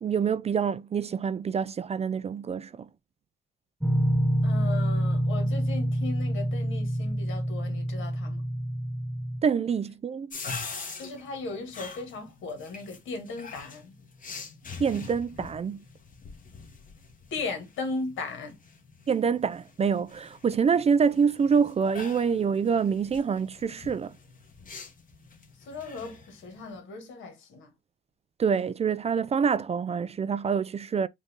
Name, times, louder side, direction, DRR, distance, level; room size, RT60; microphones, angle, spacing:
voice 1, 0.0-2.9 9.4-10.4 14.8-15.8 19.1-24.2 28.4-31.1, right 6 dB, 30° right, 0.4 m, -26 dB
sound 1, 3.8-9.4, right 1 dB, 5° right, 1.2 m, -27 dB
voice 2, 4.4-8.4 11.0-13.9 17.3-18.6 25.6-27.7, left 3 dB, 75° left, 1.8 m, -37 dB
sound 2, 10.3-26.8, left 4 dB, 40° left, 1.5 m, -44 dB
5.1 x 2.6 x 3.6 m
cardioid pair, 90°, 20 cm